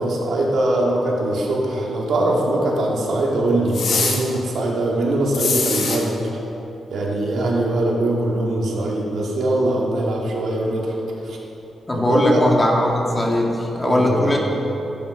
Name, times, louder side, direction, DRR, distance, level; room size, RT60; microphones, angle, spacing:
voice 1, 0.0-6.1 6.9-10.9 11.2-11.4 11.9-12.5 13.8-14.3, right 1 dB, 75° right, -3 dB, 2.7 m, -22 dB
sound 1, 3.7-4.2 5.3-6.0, left 4 dB, 75° left, 2.3 m, -22 dB
voice 2, 11.9-14.4, left 1 dB, 20° left, -1 dB, 2.5 m, -19 dB
13.0 x 10.0 x 5.3 m, 3.0 s
cardioid pair, 70°, 0 cm